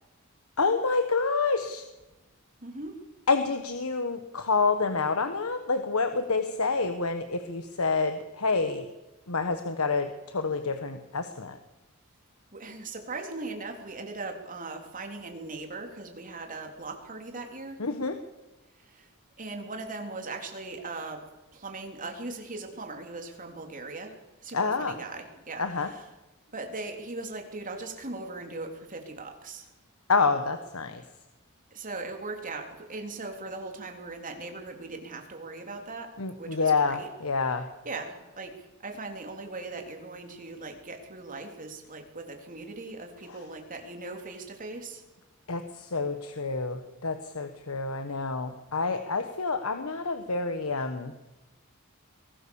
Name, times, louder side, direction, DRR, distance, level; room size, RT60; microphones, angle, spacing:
voice 1, 0.6-1.8 3.3-8.9 9.3-11.6 17.8-18.2 24.5-24.9 25.6-25.9 30.1-31.0 36.2-37.7 43.3-43.4 45.5-51.1, left 4 dB, 85° left, 8 dB, 1.4 m, -28 dB
voice 2, 2.6-3.0 12.5-17.8 18.8-19.1 19.4-21.3 21.5-26.1 26.5-29.7 31.7-37.1 37.8-45.0, right 3 dB, 40° right, 4 dB, 3.5 m, -39 dB
23.0 x 17.5 x 7.2 m, 1.1 s
head